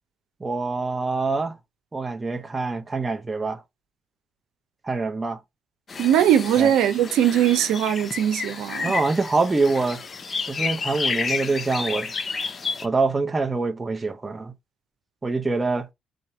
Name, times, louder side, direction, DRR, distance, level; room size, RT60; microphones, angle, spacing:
voice 1, 0.4-1.6 1.9-3.6 4.8-5.4 6.6-6.7 8.8-10.0 10.5-12.1 12.8-14.5 15.2-15.9, right 3 dB, 20° right, 0.7 m, -25 dB
sound 1, 5.9-12.9, left 5 dB, 40° left, 0.6 m, -31 dB
voice 2, 6.0-9.0, right 10 dB, 90° right, 0.7 m, -20 dB
4.2 x 2.6 x 4.7 m
cardioid pair, 90°, 0 cm